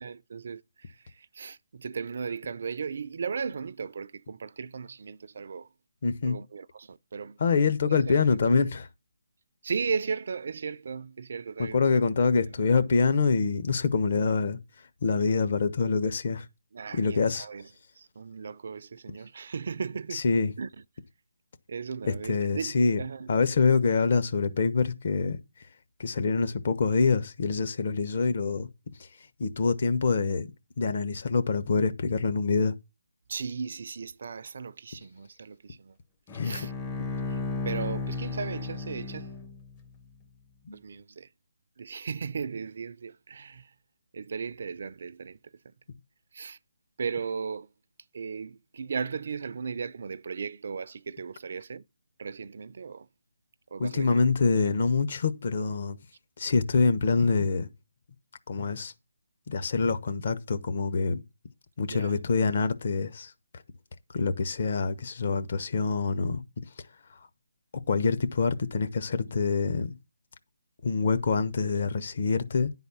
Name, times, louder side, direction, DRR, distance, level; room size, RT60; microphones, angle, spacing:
voice 1, 0.0-5.7 6.2-7.4 7.8-8.2 9.6-12.0 16.7-17.7 18.0-20.2 20.6-20.7 21.7-23.3 33.3-36.0 36.4-36.7 37.3-37.4 37.6-39.3 40.7-41.3 41.8-43.7 44.1-45.5 46.3-46.6 47.0-47.7 48.1-51.8 52.2-53.1 53.7-54.2 54.5-54.7 61.9-62.2 69.2-69.3, right 5 dB, 55° right, 0.4 m, -36 dB
voice 2, 6.0-6.4 7.4-8.9 11.6-14.6 15.0-16.5 16.9-17.5 20.1-20.5 22.1-23.0 23.3-25.4 26.0-28.7 29.0-29.1 29.4-30.5 30.8-32.7 36.3-36.7 40.7-40.8 53.8-56.0 56.4-57.7 58.5-58.9 59.5-61.2 61.8-63.3 64.1-66.4 67.9-69.9 70.8-72.7, left 4 dB, 50° left, 1.0 m, -25 dB
Bowed string instrument, 36.3-39.8, left 3 dB, 15° left, 0.6 m, -34 dB
10.5 x 4.1 x 7.0 m
hypercardioid pair, 160°, 0 cm